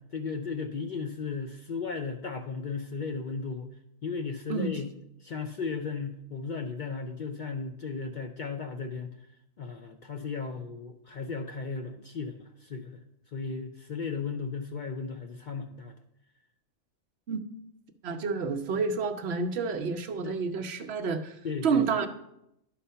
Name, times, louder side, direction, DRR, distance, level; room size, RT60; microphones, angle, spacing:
voice 1, 0.0-3.7 4.0-4.9 5.2-9.1 9.6-13.0 13.3-15.9 20.2-20.4 21.4-21.8, left 5 dB, 55° left, 5 dB, 0.6 m, -35 dB
voice 2, 18.0-22.1, right 5 dB, 65° right, 7 dB, 0.9 m, -29 dB
11.0 x 4.1 x 5.6 m, 0.81 s
omnidirectional pair, 1.3 m